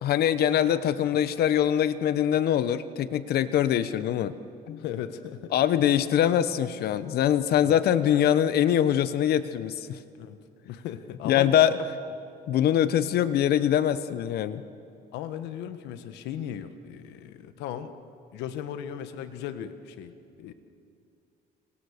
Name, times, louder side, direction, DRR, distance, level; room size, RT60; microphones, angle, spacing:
voice 1, 0.0-4.3 4.7-4.8 5.5-10.0 11.2-11.8 12.5-14.6, left 10 dB, 70° left, 13 dB, 1.1 m, -23 dB
voice 2, 4.8-5.5 7.6-7.7 10.1-10.4 10.6-11.7 15.1-17.9 18.3-20.1 20.4-20.5, left 10 dB, 90° left, 10 dB, 1.5 m, -37 dB
30.0 x 25.5 x 6.7 m, 2.6 s
cardioid pair, 110°, 17 cm